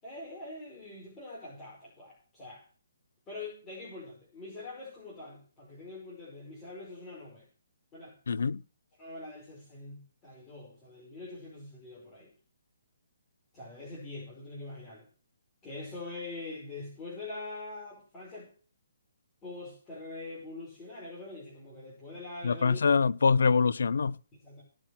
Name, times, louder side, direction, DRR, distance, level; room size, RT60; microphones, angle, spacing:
voice 1, 0.0-2.6 3.3-7.5 7.9-8.1 9.0-12.3 13.5-15.1 15.6-18.5 19.4-22.8 24.3-24.6, left 2 dB, 15° left, 5.1 m, -44 dB
voice 2, 8.3-8.6 22.4-24.1, left 5 dB, 65° left, 0.5 m, -24 dB
17.0 x 6.1 x 6.0 m
figure-of-eight pair, 140°, 0 cm